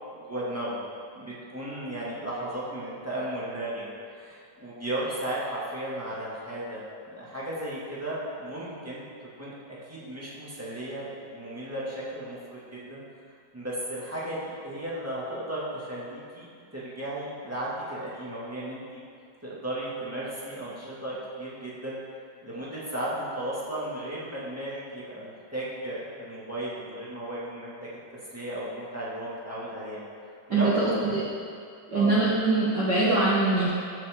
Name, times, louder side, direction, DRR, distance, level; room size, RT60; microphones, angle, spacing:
voice 1, 0.1-0.8 1.1-9.0 9.4-13.0 13.5-16.5 16.7-19.0 19.4-22.0 22.4-28.0 28.3-30.0 30.5-30.9 31.9-32.2, right 1 dB, 5° right, -9 dB, 1.4 m, -35 dB
voice 2, 30.5-31.2 31.9-33.7, right 2 dB, 50° right, -7 dB, 1.3 m, -23 dB
14.5 x 7.6 x 3.7 m, 2.4 s
omnidirectional pair, 3.7 m